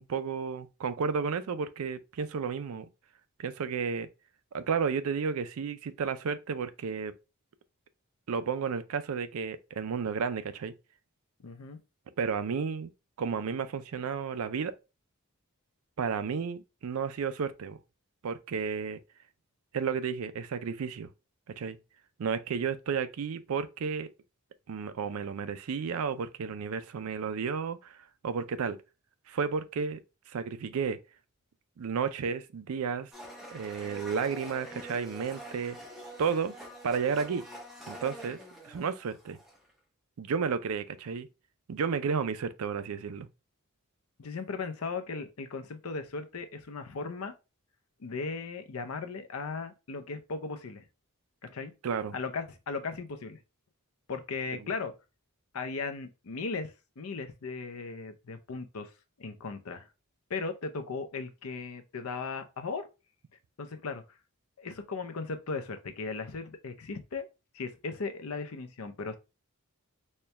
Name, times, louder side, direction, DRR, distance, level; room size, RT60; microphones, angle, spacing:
voice 1, 0.0-2.9 3.4-4.1 4.5-7.1 8.3-10.7 12.2-12.9 13.2-14.7 16.0-17.8 18.2-19.0 19.7-21.1 21.6-21.8 22.2-24.1 24.7-28.8 29.3-30.0 30.3-31.0 31.8-33.1 33.5-35.8 36.2-36.6 36.8-37.4 37.9-38.4 38.7-39.4 40.2-41.3 41.7-43.3 51.8-52.1 54.5-54.6, right 6 dB, 75° right, 0.4 m, -32 dB
voice 2, 11.4-11.8 44.2-47.3 48.0-50.8 51.4-51.7 52.1-53.4 54.1-54.9 55.5-58.9 59.2-59.9 60.3-62.8 63.6-64.0 64.6-67.3 67.5-69.2, left 4 dB, 75° left, 0.6 m, -37 dB
Domestic sounds home sounds, 33.1-39.7, right 1 dB, ahead, 0.9 m, -45 dB
4.3 x 2.3 x 3.2 m
head